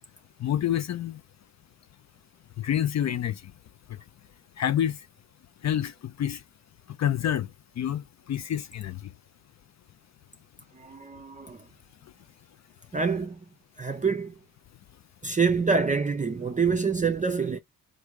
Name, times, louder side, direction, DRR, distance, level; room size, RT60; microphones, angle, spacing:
voice 1, 0.4-1.2 2.6-3.4 3.9-4.0 4.6-5.0 5.6-6.4 7.0-7.5 7.8-9.0, left 10 dB, 50° left, 0.5 m, -27 dB
voice 2, 10.8-11.6 12.9-13.4 13.8-14.3 15.2-17.6, right 5 dB, 20° right, 0.6 m, -26 dB
3.4 x 2.7 x 4.6 m
cardioid pair, 75°, 34 cm